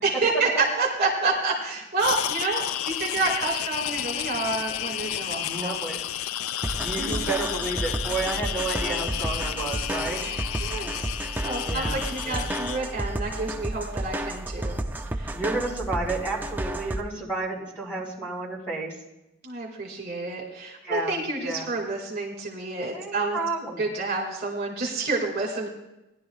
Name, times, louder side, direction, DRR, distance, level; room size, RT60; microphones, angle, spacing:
voice 1, 0.0-5.8 7.0-7.2 10.2-11.1 11.4-14.8 15.1-15.3 19.4-23.4 23.8-25.7, right 3 dB, 50° right, 0 dB, 2.0 m, -29 dB
sound 1, 2.0-12.8, left 12 dB, 80° left, 0.3 m, -31 dB
voice 2, 5.4-6.0 6.7-10.2 11.6-12.0 12.2-12.5 15.3-18.9 20.8-21.7 22.9-23.8, right 3 dB, 10° left, -4 dB, 3.3 m, -31 dB
sound 2, 6.6-17.0, right 1 dB, 10° right, 0.4 m, -32 dB
19.0 x 11.0 x 2.3 m, 0.93 s
head